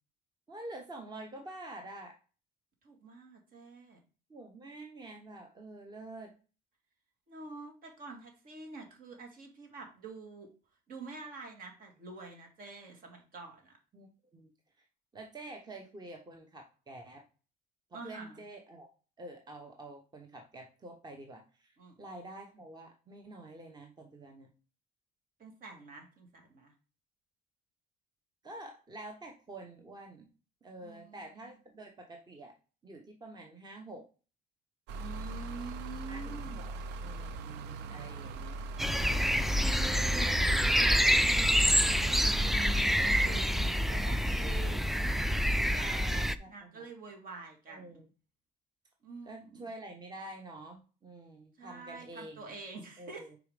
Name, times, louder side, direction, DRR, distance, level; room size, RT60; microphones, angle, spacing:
voice 1, 0.5-2.1 4.3-6.3 13.9-14.5 14.8-14.9 15.1-17.2 17.9-18.9 19.2-24.5 28.4-30.3 30.6-32.5 32.8-34.1 36.1-36.7 37.0-38.6 45.8-46.9 47.7-48.1 49.2-52.6 53.0-53.4, right 2 dB, 25° right, 2 dB, 1.1 m, -48 dB
voice 2, 2.8-4.0 7.3-10.5 10.9-13.7 17.9-18.4 21.8-22.0 25.4-26.7 30.8-31.5 35.0-36.6 39.5-43.5 43.9-48.0 49.0-49.7 51.6-53.3, right 4 dB, 55° right, 3 dB, 2.2 m, -47 dB
sound 1, 34.9-43.4, right 2 dB, 90° right, 0.6 m, -40 dB
sound 2, 38.8-46.3, equal, ahead, 0.3 m, -27 dB
4.9 x 4.8 x 5.1 m, 0.35 s
cardioid pair, 110°, 17 cm